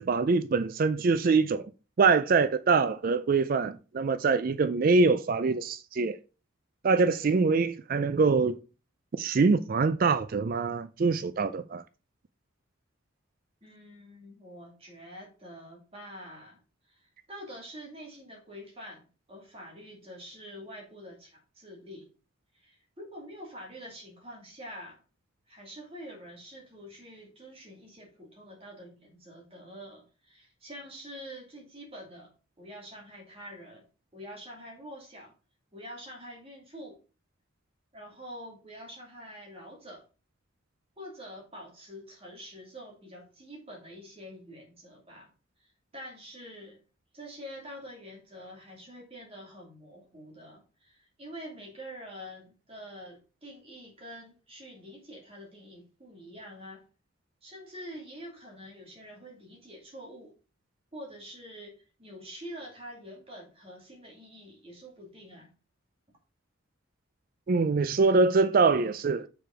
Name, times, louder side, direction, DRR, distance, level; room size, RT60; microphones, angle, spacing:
voice 1, 0.0-1.7 2.0-6.2 6.8-8.6 9.2-11.8 67.5-69.3, right 4 dB, 45° right, 0.4 m, -24 dB
voice 2, 13.6-16.6 16.9-22.1 22.5-25.0 25.5-32.3 32.6-33.9 34.1-35.3 35.7-37.0 37.9-40.0 41.0-45.3 45.6-46.8 47.1-56.8 57.4-60.4 60.9-65.5, equal, 30° right, 2.2 m, -46 dB
6.6 x 4.6 x 4.9 m
head